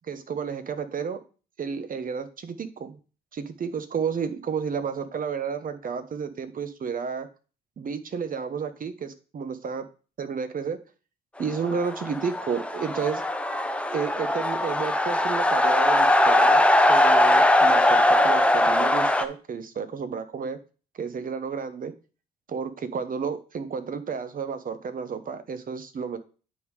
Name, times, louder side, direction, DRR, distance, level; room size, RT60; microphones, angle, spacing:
voice 1, 0.1-1.2 1.6-3.0 3.3-7.3 7.8-9.8 10.2-10.8 11.4-13.2 13.8-16.6 16.9-20.6 20.9-21.9 22.5-26.2, right 6 dB, 40° right, 11 dB, 1.1 m, -31 dB
sound 1, 11.5-19.3, left 1 dB, 5° left, 0.8 m, -21 dB
9.1 x 3.7 x 4.8 m, 0.36 s
supercardioid pair, 70°, 21 cm